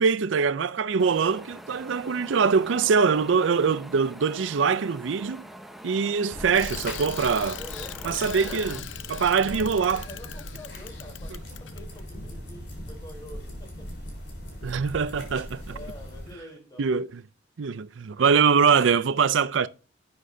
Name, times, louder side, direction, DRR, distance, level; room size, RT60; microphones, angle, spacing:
voice 1, 0.0-5.5 5.8-7.6 8.0-8.8 9.1-10.0 14.6-15.7 16.8-17.2 17.6-19.7, right 5 dB, 80° right, 0.5 m, -23 dB
Wind, 1.0-8.8, equal, ahead, 0.7 m, -45 dB
sound 1, 6.3-16.3, equal, 60° left, 4.3 m, -40 dB
Bicycle, 6.5-12.0, left 10 dB, 80° left, 0.6 m, -40 dB
voice 2, 7.3-8.8 9.5-13.9 15.7-17.1, equal, 20° left, 3.7 m, -46 dB
11.5 x 9.6 x 2.7 m
head